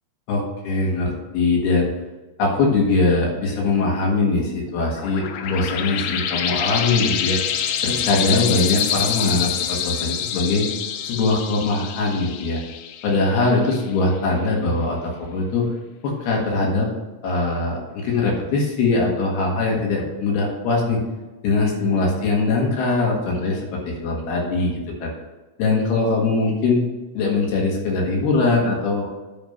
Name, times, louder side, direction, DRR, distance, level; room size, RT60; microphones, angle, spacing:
voice 1, 0.3-1.9 2.4-7.4 7.8-10.7 11.0-12.6 13.0-15.6 16.0-16.9 17.2-21.0 21.4-25.1 25.6-26.8 27.2-29.1, left 3 dB, 70° left, -2 dB, 3.6 m, -21 dB
sound 1, 4.7-13.9, left 9 dB, 85° left, 2.2 m, -26 dB
9.1 x 5.3 x 5.4 m, 1.2 s
omnidirectional pair, 4.9 m